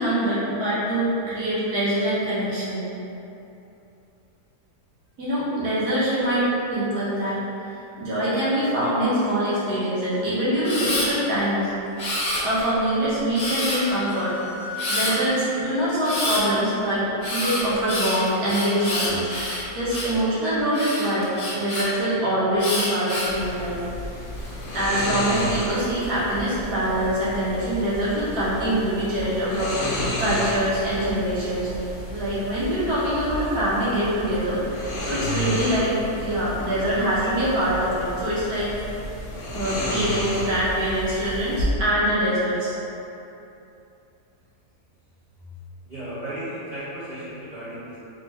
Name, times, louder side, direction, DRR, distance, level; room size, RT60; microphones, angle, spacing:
voice 1, 0.0-2.9 5.2-7.4 8.0-11.7 12.2-14.3 14.6-19.3 19.8-23.8 24.7-31.7 32.1-38.7 39.5-42.8, right 1 dB, 70° right, -10 dB, 1.8 m, -24 dB
Camera, 10.6-11.1 12.0-12.7 13.3-13.9 14.8-15.1 16.0-16.4 17.2-20.2 20.7-21.8 22.6-23.4 24.0-24.5, left 1 dB, 30° left, 0.9 m, -28 dB
sound 1, 13.7-15.6, left 5 dB, 75° left, 1.1 m, -36 dB
sound 2, 23.3-41.7, left 1 dB, 60° left, 0.5 m, -32 dB
voice 2, 45.8-48.0, right 1 dB, 40° right, -13 dB, 0.8 m, -35 dB
3.7 x 3.5 x 3.3 m, 2.8 s
omnidirectional pair, 1.7 m